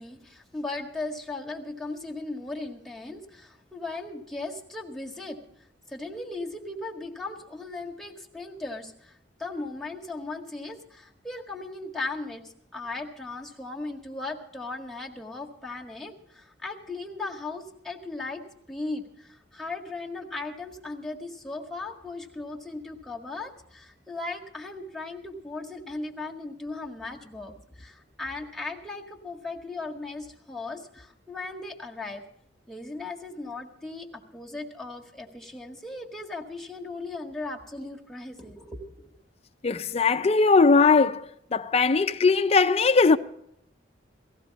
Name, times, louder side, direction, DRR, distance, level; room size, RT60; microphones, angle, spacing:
voice 1, 0.0-5.4 5.9-9.1 9.4-32.2 32.7-39.1, left 2 dB, ahead, 1.7 m, -37 dB
voice 2, 39.6-43.2, left 4 dB, 35° left, 0.5 m, -20 dB
18.0 x 15.0 x 4.1 m
head